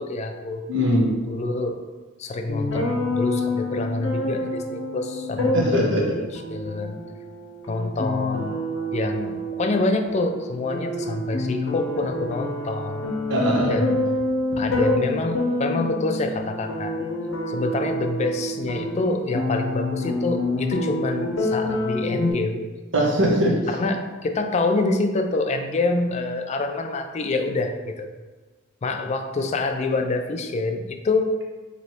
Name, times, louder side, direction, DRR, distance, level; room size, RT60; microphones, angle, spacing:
voice 1, 0.0-0.6 1.3-1.8 2.2-7.0 7.7-8.6 8.9-13.1 13.7-14.0 14.6-17.0 17.5-22.6 23.7-28.1 28.8-31.4, left 2 dB, 35° left, 5 dB, 0.3 m, -26 dB
voice 2, 0.7-1.1 5.5-6.2 13.3-13.9 22.9-23.7, equal, 65° right, -2 dB, 1.0 m, -21 dB
sound 1, 2.5-22.3, left 2 dB, 85° left, 0.7 m, -27 dB
3.2 x 2.9 x 4.2 m, 1.3 s
head